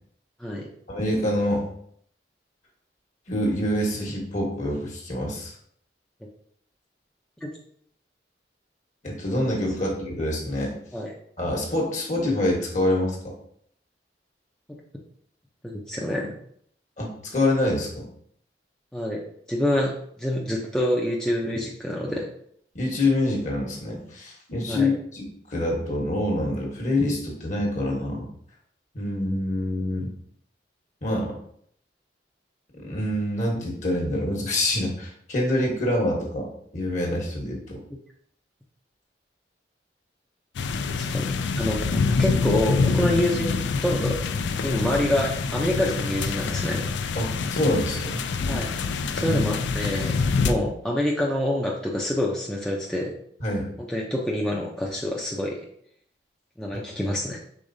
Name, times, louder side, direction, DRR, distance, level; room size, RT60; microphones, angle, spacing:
voice 1, 0.9-1.6 3.3-5.5 9.0-10.7 11.4-13.3 17.0-17.1 17.3-18.1 22.7-28.3 28.9-30.1 31.0-31.3 32.8-36.5 36.7-37.8 44.8-44.9 47.1-48.2 49.2-49.4 50.4-50.5 53.4-53.7 56.7-56.8, left 1 dB, 40° left, 0 dB, 1.2 m, -26 dB
voice 2, 15.6-16.3 18.9-19.2 19.5-19.9 20.2-22.3 24.7-24.9 37.9-38.0 41.0-44.2 44.6-46.9 48.5-48.7 49.1-50.1 50.4-53.2 53.8-55.6 56.6-57.4, left 1 dB, 5° left, -4 dB, 0.4 m, -26 dB
sound 1, 40.6-50.5, left 4 dB, 75° left, 0.4 m, -26 dB
4.9 x 3.8 x 2.6 m, 0.65 s
head